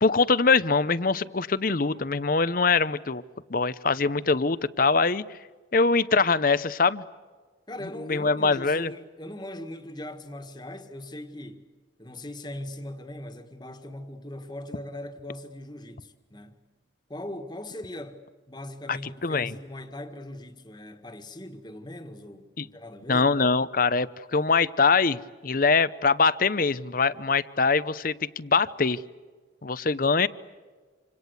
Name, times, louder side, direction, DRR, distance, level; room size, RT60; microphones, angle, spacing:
voice 1, 0.0-3.2 3.5-5.2 5.7-7.0 8.1-8.9 19.2-19.5 22.6-22.7 23.1-29.0 29.6-30.3, left 4 dB, 45° left, 0.7 m, -23 dB
voice 2, 7.7-11.7 12.0-16.6 17.1-23.3, left 1 dB, 20° left, 1.8 m, -40 dB
27.0 x 26.0 x 8.2 m
head